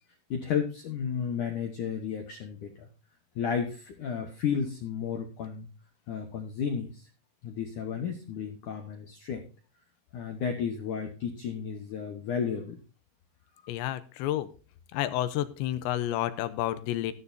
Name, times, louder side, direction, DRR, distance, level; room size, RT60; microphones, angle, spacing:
voice 1, 0.3-2.9 3.4-5.7 6.1-7.1 7.4-9.5 10.1-12.8, left 7 dB, 65° left, 3 dB, 2.0 m, -33 dB
voice 2, 13.7-14.5 14.9-17.1, left 13 dB, 80° left, 12 dB, 3.0 m, -30 dB
13.5 x 12.5 x 2.7 m, 0.34 s
omnidirectional pair, 5.4 m